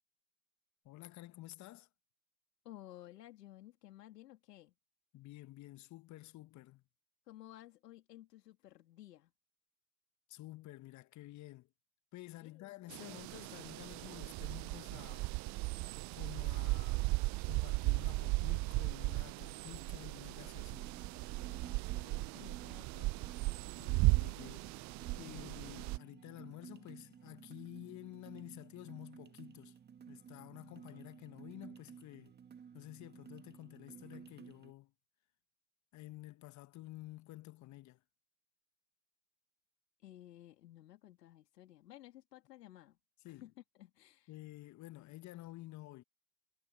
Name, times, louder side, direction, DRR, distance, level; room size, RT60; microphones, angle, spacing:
voice 1, 0.8-1.9 5.1-6.8 10.3-11.7 12.1-15.3 16.1-17.1 17.4-21.0 23.8-24.7 25.2-29.8 30.1-32.3 32.7-34.9 35.9-38.0 43.2-43.5 44.3-46.0, left 17 dB, 35° left, 1.5 m, -51 dB
voice 2, 2.6-4.7 7.3-9.3 12.4-12.7 21.5-23.2 25.1-25.6 40.0-43.0 43.2-43.5 43.8-44.3, left 14 dB, 70° left, 3.0 m, -56 dB
sound 1, 12.9-26.0, right 23 dB, 35° right, 0.8 m, -36 dB
sound 2, 20.7-34.7, right 7 dB, 20° right, 2.0 m, -55 dB
hypercardioid pair, 95°, 50 cm